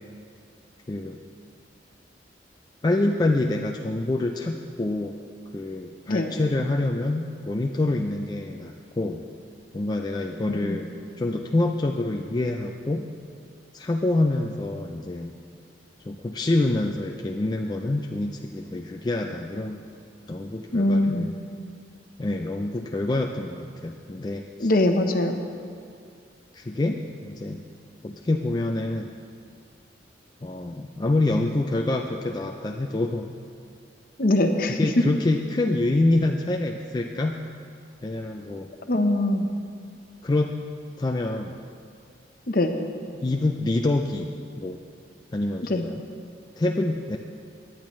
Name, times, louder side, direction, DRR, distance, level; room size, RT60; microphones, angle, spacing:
voice 1, 0.9-1.2 2.8-5.2 5.5-9.2 9.7-10.9 11.2-13.1 13.7-15.4 16.0-19.8 20.3-21.3 22.2-24.7 26.5-27.6 28.0-29.1 30.4-33.3 34.8-37.5 38.0-38.7 40.2-40.6 41.0-41.6 43.1-44.8 45.3-46.0 46.6-47.2, left 2 dB, 25° left, 2 dB, 0.4 m, -26 dB
voice 2, 10.5-10.8 20.7-21.3 24.6-25.4 34.2-34.9 38.9-39.5 42.5-42.7 45.6-45.9, left 1 dB, 50° left, 5 dB, 0.9 m, -22 dB
17.0 x 10.5 x 3.2 m, 2.3 s
head